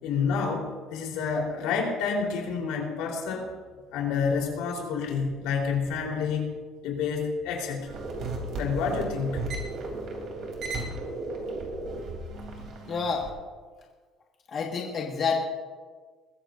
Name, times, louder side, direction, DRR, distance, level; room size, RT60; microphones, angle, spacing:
voice 1, 0.0-3.5 3.9-6.5 6.8-7.9 8.6-9.5, left 5 dB, 85° left, 0 dB, 3.7 m, -29 dB
sound 1, 7.9-13.3, right 2 dB, 50° right, 3.2 m, -35 dB
voice 2, 12.9-13.3 14.5-15.4, left 5 dB, 35° left, 0 dB, 1.6 m, -28 dB
21.5 x 14.5 x 2.6 m, 1.5 s
cardioid pair, 155°, 0 cm